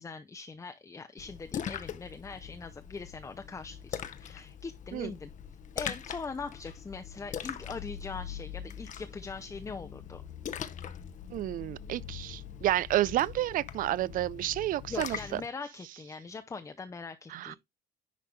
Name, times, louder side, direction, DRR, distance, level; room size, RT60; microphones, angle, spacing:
voice 1, 0.0-5.3 5.8-10.2 14.9-17.6, left 4 dB, 20° left, 0.6 m, -42 dB
Splash splatter, 1.2-15.5, left 8 dB, 45° left, 0.8 m, -42 dB
voice 2, 11.3-15.4 17.3-17.6, right 14 dB, 55° right, 0.4 m, -30 dB
10.5 x 3.5 x 3.2 m
cardioid pair, 110°, 17 cm